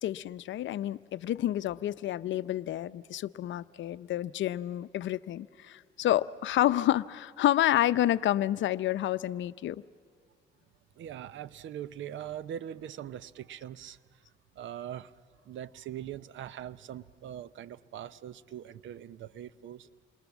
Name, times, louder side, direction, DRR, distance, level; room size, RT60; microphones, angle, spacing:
voice 1, 0.0-9.8, left 13 dB, 70° left, 0.6 m, -29 dB
voice 2, 11.0-14.0 14.6-15.1 15.5-19.9, right 10 dB, 75° right, 0.8 m, -41 dB
28.0 x 23.0 x 7.3 m
cardioid pair, 90°, 20 cm